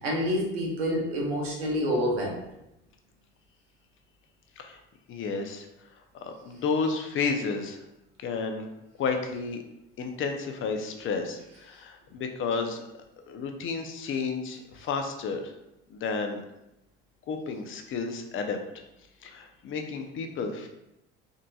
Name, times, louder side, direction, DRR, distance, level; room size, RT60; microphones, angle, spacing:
voice 1, 0.0-2.4, equal, 90° right, -2 dB, 1.0 m, -27 dB
voice 2, 5.1-5.7 6.1-7.8 8.2-8.7 9.0-9.6 10.0-12.8 13.2-15.5 15.9-16.4 17.3-18.6 19.2-20.7, left 4 dB, 45° left, 5 dB, 0.6 m, -31 dB
3.7 x 2.6 x 2.3 m, 0.88 s
hypercardioid pair, 75°, 29 cm